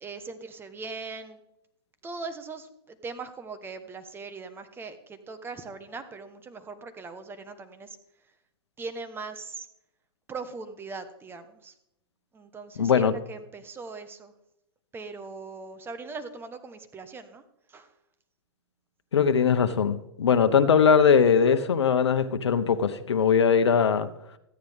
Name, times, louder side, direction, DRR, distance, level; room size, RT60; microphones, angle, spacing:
voice 1, 0.0-1.4 2.0-8.0 8.8-9.7 10.3-11.7 12.3-14.3 14.9-17.4 17.7-17.9, right 4 dB, 15° right, 9 dB, 1.2 m, -40 dB
voice 2, 12.8-13.1 19.1-24.1, left 6 dB, 85° left, 10 dB, 0.8 m, -21 dB
13.5 x 9.5 x 3.6 m, 0.82 s
hypercardioid pair, 120°, 14 cm